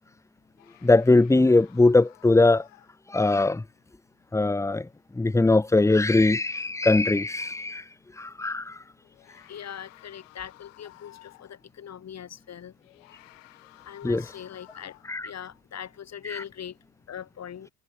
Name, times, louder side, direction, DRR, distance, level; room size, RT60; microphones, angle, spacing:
sound 1, 0.6-3.4 7.6-7.7 9.0-11.7 12.8-15.3, left 20 dB, 85° left, 5.6 m, -54 dB
voice 1, 0.8-2.6 3.1-3.6 4.3-4.9 5.2-7.8 8.2-8.8 14.0-14.2 15.1-15.3 16.2-16.4, left 2 dB, 10° left, 1.1 m, -21 dB
voice 2, 9.5-12.7 13.9-15.0 15.2-16.8 17.1-17.7, left 9 dB, 45° left, 4.4 m, -41 dB
hypercardioid pair, 80°, 37 cm